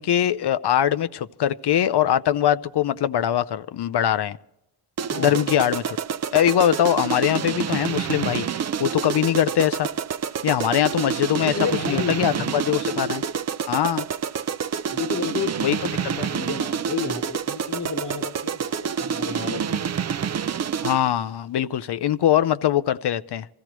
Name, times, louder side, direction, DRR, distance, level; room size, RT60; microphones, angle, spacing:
voice 1, 0.0-4.4 5.2-6.0 6.3-9.9 10.4-11.6 11.9-13.2 13.7-14.1 15.6-15.8 16.0-16.3 20.8-23.5, left 11 dB, 80° left, 0.6 m, -22 dB
sound 1, 5.0-21.2, right 7 dB, 40° right, 0.4 m, -28 dB
voice 2, 11.4-12.4 12.8-13.0 14.9-19.9, left 5 dB, 45° left, 1.2 m, -32 dB
25.0 x 15.0 x 3.0 m
cardioid pair, 60°, 40 cm